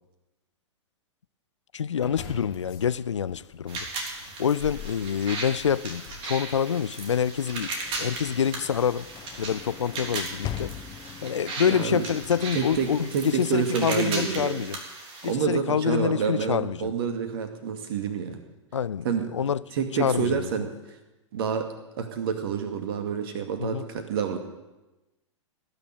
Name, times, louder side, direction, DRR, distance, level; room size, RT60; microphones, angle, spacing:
voice 1, 1.7-3.9 4.4-7.7 8.0-9.1 9.4-10.7 11.2-14.8 15.2-16.9 18.7-19.6 20.0-20.5 23.6-23.8, left 8 dB, 70° left, 0.5 m, -26 dB
sound 1, 2.0-7.7, left 5 dB, 45° left, 3.2 m, -45 dB
sound 2, 3.7-15.3, right 3 dB, 30° right, 3.4 m, -37 dB
Sliding door / Slam, 7.0-14.0, left 10 dB, 25° left, 0.9 m, -42 dB
voice 2, 11.7-12.1 12.5-14.6 15.3-18.4 19.0-19.2 19.7-20.7 21.3-21.7 22.0-24.4, right 7 dB, 50° right, 2.3 m, -28 dB
19.0 x 6.9 x 9.3 m
figure-of-eight pair, 105°, 16 cm